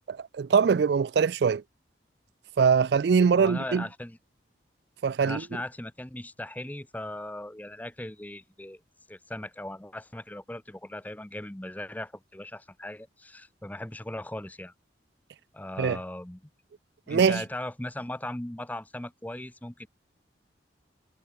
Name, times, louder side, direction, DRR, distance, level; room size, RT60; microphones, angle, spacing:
voice 1, 0.1-1.6 2.6-3.8 5.0-5.4 15.8-16.0 17.1-17.4, right 6 dB, 60° right, 0.3 m, -22 dB
voice 2, 3.3-4.2 5.2-8.8 9.1-14.7 15.5-16.4 17.1-19.9, left 1 dB, 10° left, 0.6 m, -38 dB
head